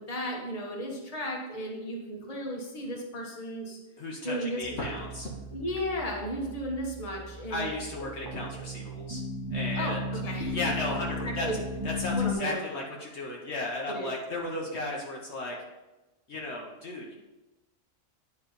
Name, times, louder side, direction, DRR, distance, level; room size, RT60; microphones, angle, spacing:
voice 1, 0.0-3.8 4.2-4.9 5.5-7.7 9.7-11.0 11.2-11.6 12.1-12.6 13.9-14.1, equal, 30° left, -1 dB, 1.3 m, -35 dB
voice 2, 4.0-5.3 7.5-9.2 9.5-10.1 10.5-11.5 11.8-15.5 16.3-17.1, left 2 dB, 60° left, -2 dB, 1.2 m, -35 dB
sound 1, 4.6-12.3, left 1 dB, 20° right, 0.7 m, -36 dB
9.5 x 3.3 x 5.2 m, 1.1 s
omnidirectional pair, 1.3 m